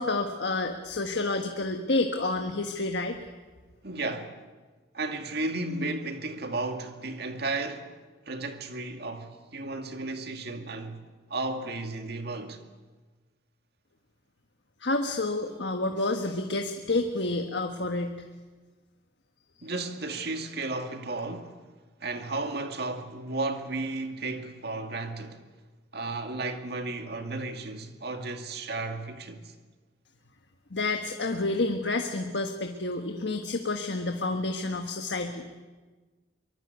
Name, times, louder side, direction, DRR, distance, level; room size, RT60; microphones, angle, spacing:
voice 1, 0.0-3.2 14.8-18.2 30.7-35.5, left 2 dB, 75° left, 1.5 m, -29 dB
voice 2, 3.8-4.4 4.9-7.9 8.3-11.0 11.3-12.6 19.6-21.6 22.0-25.4 25.9-29.5, right 2 dB, 60° right, 2.2 m, -34 dB
24.0 x 23.0 x 8.2 m
head